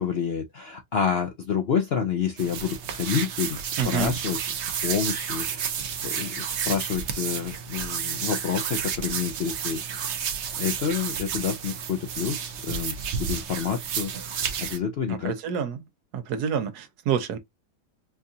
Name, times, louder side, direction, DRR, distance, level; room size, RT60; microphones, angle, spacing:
voice 1, 0.0-4.4 4.8-5.6 6.0-9.8 10.6-12.9 13.2-14.1 14.6-15.4, left 7 dB, 65° left, 0.6 m, -28 dB
sound 1, 2.4-14.8, right 7 dB, 60° right, 0.8 m, -31 dB
voice 2, 3.8-4.2 15.2-15.8 16.1-17.4, right 7 dB, 75° right, 1.3 m, -27 dB
4.6 x 2.4 x 2.6 m
omnidirectional pair, 1.7 m